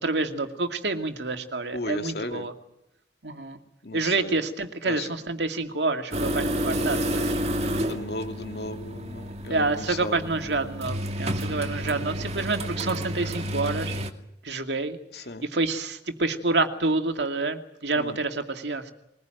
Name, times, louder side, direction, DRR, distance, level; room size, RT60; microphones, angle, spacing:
voice 1, 0.0-2.5 3.2-3.6 3.9-7.4 9.5-14.0 14.4-15.0 15.5-18.9, right 3 dB, 70° right, 6 dB, 2.4 m, -28 dB
voice 2, 1.7-2.5 3.8-4.4 4.8-5.1 7.8-10.4 15.1-15.5 18.0-18.2, left 2 dB, 60° left, 6 dB, 2.6 m, -35 dB
sound 1, 6.1-14.1, equal, 35° right, 2.3 m, -30 dB
22.5 x 20.5 x 9.1 m, 0.78 s
head